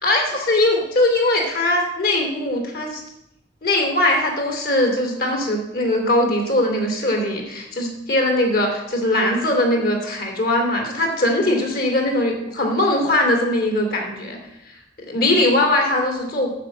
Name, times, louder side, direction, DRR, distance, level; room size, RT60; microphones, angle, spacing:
voice 1, 0.0-3.0 3.6-14.4 15.1-16.5, left 1 dB, 55° left, 2 dB, 2.8 m, -20 dB
9.3 x 7.4 x 7.8 m, 0.86 s
head